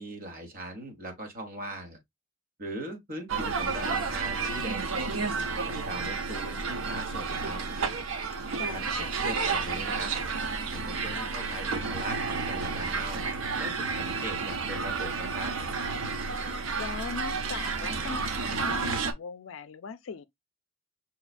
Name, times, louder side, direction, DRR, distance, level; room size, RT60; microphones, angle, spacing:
voice 1, 0.0-2.0 2.6-5.3 5.7-7.6 8.7-10.1 10.7-13.2 13.6-15.5, right 1 dB, 40° right, 1.3 m, -39 dB
sound 1, 3.3-19.1, right 4 dB, 65° right, 0.6 m, -31 dB
voice 2, 8.6-9.2 16.8-20.2, left 5 dB, 65° left, 0.4 m, -39 dB
5.7 x 2.3 x 2.3 m
head